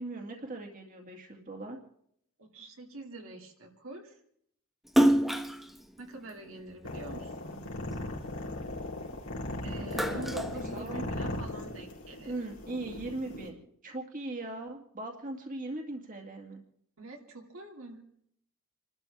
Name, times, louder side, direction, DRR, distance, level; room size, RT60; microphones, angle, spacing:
voice 1, 0.0-1.8 9.9-10.2 10.7-11.0 12.3-16.6, right 2 dB, 40° right, 1 dB, 2.2 m, -39 dB
voice 2, 2.4-4.1 6.0-7.7 9.6-12.3 17.0-18.0, right 2 dB, 70° right, 1 dB, 2.6 m, -45 dB
Splash splatter, 4.9-7.4 7.9-9.3 9.7-11.4, equal, ahead, 1.0 m, -28 dB
sound 1, 6.8-13.5, left 1 dB, 80° left, 3.8 m, -38 dB
29.5 x 12.5 x 3.5 m, 0.68 s
head